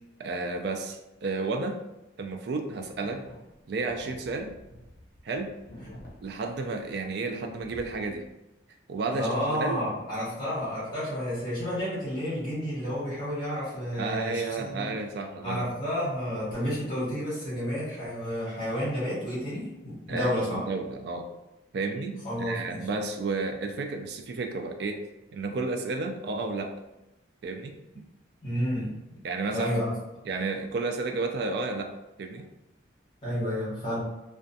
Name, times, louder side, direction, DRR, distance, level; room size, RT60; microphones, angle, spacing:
voice 1, 0.2-1.8 2.2-3.2 3.7-4.5 5.2-5.5 6.2-8.3 8.9-9.9 14.0-15.7 20.1-21.3 21.7-25.0 25.3-26.8 27.4-27.7 29.2-29.9 30.2-32.5, right 3 dB, 55° right, 5 dB, 0.3 m, -32 dB
sound 1, 2.9-7.2 7.5-8.3, equal, 50° left, 0.6 m, -48 dB
voice 2, 9.1-14.9 15.4-20.6 22.2-22.8 28.4-29.0 29.5-29.9 33.2-34.0, equal, 25° left, -10 dB, 1.2 m, -31 dB
2.4 x 2.2 x 2.6 m, 0.96 s
head